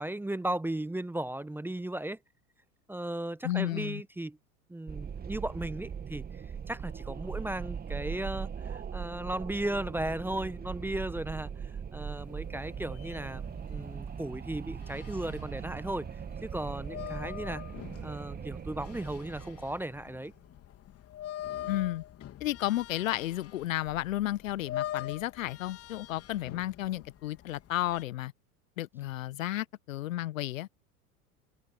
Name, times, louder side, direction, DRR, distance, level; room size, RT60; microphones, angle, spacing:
voice 1, 0.0-2.2 2.9-4.4 4.7-6.2 6.7-13.4 13.7-16.1 16.4-17.6 18.0-20.3, right 1 dB, 5° right, 1.2 m, -36 dB
voice 2, 3.4-4.0 21.7-22.0 22.4-28.3 28.8-30.7, left 14 dB, 60° left, 1.4 m, -32 dB
Wind, 4.9-20.2, right 7 dB, 20° right, 2.6 m, -40 dB
sound 1, 12.1-28.0, left 12 dB, 30° left, 3.7 m, -44 dB
figure-of-eight pair, 80°, 45 cm